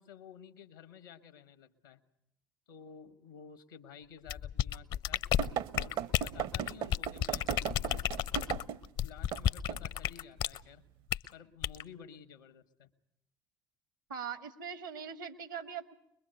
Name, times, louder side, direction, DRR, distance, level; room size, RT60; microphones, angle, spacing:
voice 1, 0.0-2.0 2.7-5.3 5.7-8.0 9.0-10.8 11.3-12.9, left 7 dB, 80° left, 9 dB, 1.4 m, -53 dB
sound 1, 4.3-10.6 11.1-11.3 11.6-11.8, left 10 dB, 55° left, 0.7 m, -32 dB
sound 2, 5.4-8.9 9.3-9.4 9.7-9.9, right 9 dB, 55° right, 0.8 m, -36 dB
voice 2, 14.1-15.9, right 7 dB, 80° right, 11 dB, 1.7 m, -41 dB
23.0 x 22.0 x 6.7 m, 0.83 s
figure-of-eight pair, 55°, 10 cm